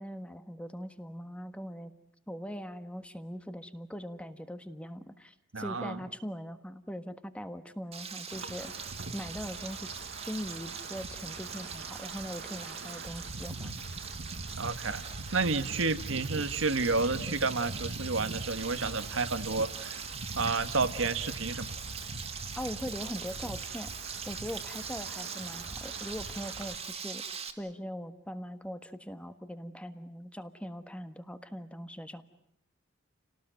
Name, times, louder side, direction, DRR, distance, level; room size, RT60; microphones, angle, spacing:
voice 1, 0.0-1.9 2.3-8.7 9.1-10.0 10.3-13.7 22.6-23.9 24.3-27.2 27.6-32.2, equal, 5° left, 9 dB, 1.4 m, -41 dB
voice 2, 5.5-6.0 14.6-15.0 15.3-20.0 20.4-21.7, right 3 dB, 80° right, 11 dB, 1.5 m, -30 dB
Frying (food), 7.9-27.5, right 6 dB, 30° right, 2.3 m, -42 dB
Wind, 8.3-26.8, right 2 dB, 60° right, 1.7 m, -43 dB
29.5 x 18.5 x 9.1 m, 0.76 s
head